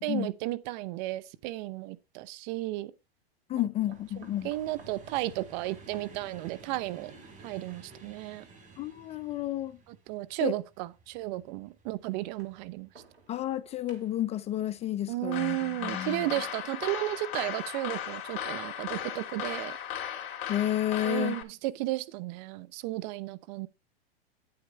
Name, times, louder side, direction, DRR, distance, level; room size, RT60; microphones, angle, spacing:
voice 1, 0.0-2.9 3.6-3.7 4.4-7.1 7.4-8.4 9.9-12.9 15.1-19.8 21.0-23.7, right 17 dB, 45° right, 0.9 m, -34 dB
sound 1, 1.5-1.6 3.9-8.2 9.2-9.3 10.4-10.5 12.2-13.6 13.9-14.4 16.2-17.6 18.1-18.2 18.6-18.7, right 4 dB, 90° right, 2.8 m, -58 dB
voice 2, 3.5-4.5 8.8-9.8 10.4-10.5 13.3-16.3 20.5-21.4, left 13 dB, 20° left, 0.5 m, -31 dB
sound 2, 3.8-14.9 15.5-16.2 17.1-17.3 17.6-17.7, right 3 dB, 25° right, 5.1 m, -54 dB
sound 3, 15.3-21.4, left 9 dB, 50° left, 2.8 m, -37 dB
9.3 x 8.7 x 3.2 m
hypercardioid pair, 115°, 31 cm